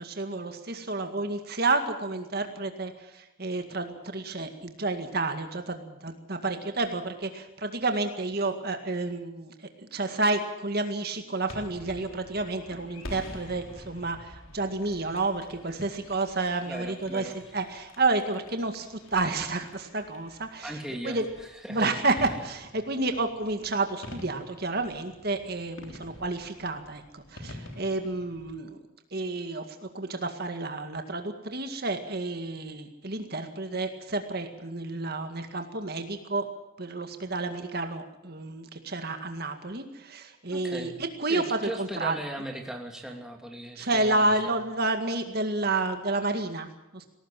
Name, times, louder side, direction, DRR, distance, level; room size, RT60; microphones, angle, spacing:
voice 1, 0.0-20.8 21.0-21.3 21.7-28.8 29.1-36.5 36.8-40.9 41.2-42.2 43.8-47.1, right 2 dB, 50° right, 6 dB, 2.0 m, -30 dB
sound 1, 11.5-28.6, left 1 dB, 75° left, 3.5 m, -47 dB
voice 2, 16.6-17.4 20.6-21.2 21.6-21.9 40.5-41.0 41.3-44.6, right 1 dB, 5° right, 2 dB, 2.7 m, -38 dB
20.5 x 18.5 x 7.6 m, 0.95 s
head